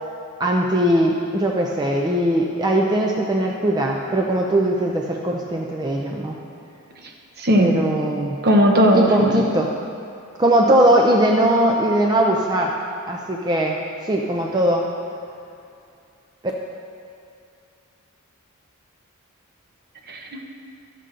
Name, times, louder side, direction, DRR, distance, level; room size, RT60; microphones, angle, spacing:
voice 1, 0.4-6.4 7.6-8.4 8.9-9.7 10.4-12.7 13.1-14.9, right 1 dB, 20° right, -1 dB, 0.4 m, -20 dB
voice 2, 7.4-7.8 8.4-9.4 20.1-20.4, equal, 45° right, 2 dB, 0.9 m, -17 dB
12.0 x 6.7 x 3.8 m, 2.5 s
head